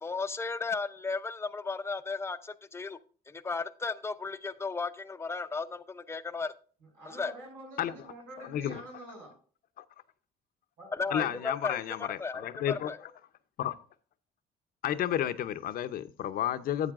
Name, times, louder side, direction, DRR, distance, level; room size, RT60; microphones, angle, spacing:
voice 1, 0.0-3.0 3.3-6.5 7.1-7.3 10.9-13.0, left 4 dB, 15° left, 0.6 m, -35 dB
voice 2, 6.8-9.4 10.8-11.4, right 2 dB, 85° right, 5.4 m, -48 dB
voice 3, 11.1-12.9 13.6-13.7 14.8-16.9, left 11 dB, 60° left, 0.7 m, -31 dB
12.0 x 8.3 x 2.5 m
cardioid pair, 110°, 17 cm